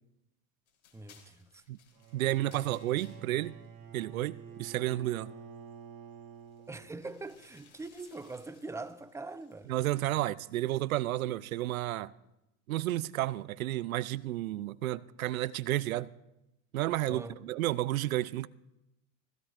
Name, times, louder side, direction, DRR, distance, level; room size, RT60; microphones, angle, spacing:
sound 1, 0.7-5.0 5.5-5.7 6.1-9.8, left 7 dB, 80° left, 3.5 m, -63 dB
voice 1, 0.9-1.6 6.7-9.7 17.1-17.4, right 3 dB, 5° right, 0.5 m, -43 dB
Bowed string instrument, 1.9-7.2, right 7 dB, 55° right, 4.2 m, -49 dB
voice 2, 2.1-3.6 3.9-5.3 9.7-12.1 12.7-16.1 16.7-18.5, right 15 dB, 85° right, 0.5 m, -31 dB
15.5 x 15.5 x 2.5 m
hypercardioid pair, 90°, 41 cm